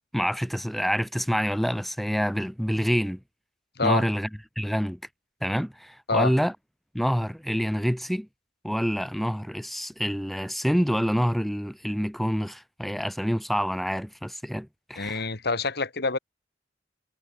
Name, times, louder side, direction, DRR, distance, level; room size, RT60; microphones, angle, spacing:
voice 1, 0.1-3.2 3.8-4.3 4.6-5.0 5.4-6.5 6.9-8.3 8.6-15.3, equal, ahead, 2.2 m, -27 dB
voice 2, 3.8-4.1 6.1-6.3 15.0-16.2, left 3 dB, 60° left, 2.9 m, -26 dB
head